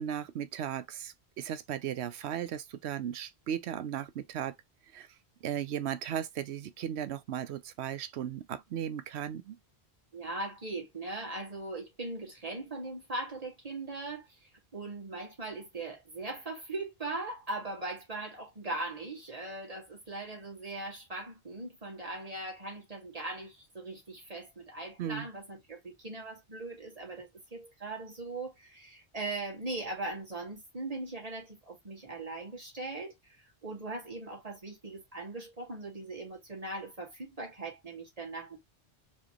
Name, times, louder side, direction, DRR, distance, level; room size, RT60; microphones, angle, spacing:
voice 1, 0.0-4.6 4.9-5.1 5.4-9.6 25.0-25.3, right 9 dB, 80° right, 0.9 m, -36 dB
voice 2, 10.1-38.6, right 2 dB, 35° right, 2.0 m, -40 dB
4.6 x 3.1 x 2.8 m
omnidirectional pair, 1.1 m